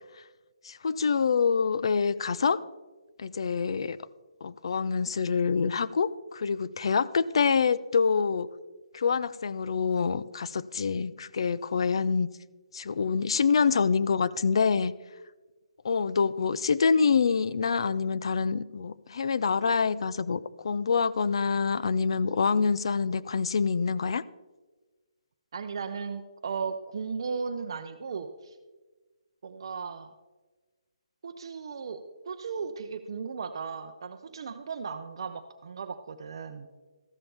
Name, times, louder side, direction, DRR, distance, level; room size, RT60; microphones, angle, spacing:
voice 1, 0.6-2.6 3.2-4.0 4.4-8.5 8.9-12.3 12.7-14.9 15.8-24.2, left 5 dB, 55° left, 17 dB, 0.4 m, -26 dB
voice 2, 25.5-28.6 29.4-30.1 31.2-36.8, right 5 dB, 45° right, 7 dB, 0.6 m, -36 dB
14.0 x 11.0 x 3.5 m, 1.3 s
hypercardioid pair, 170°, 3 cm